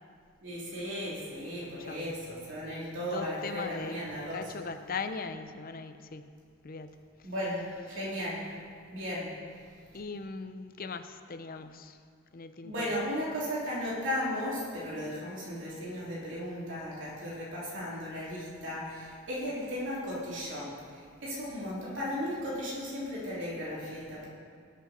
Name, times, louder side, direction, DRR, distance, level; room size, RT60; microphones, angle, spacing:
voice 1, 0.4-4.7 7.2-8.4 8.9-9.3 12.6-24.3, equal, 70° right, -7 dB, 3.4 m, -36 dB
voice 2, 1.8-2.1 3.1-4.0 4.3-6.3 6.6-7.0 9.9-12.0 12.3-13.0, left 4 dB, 45° left, 9 dB, 0.7 m, -39 dB
20.0 x 8.3 x 4.4 m, 2.2 s
head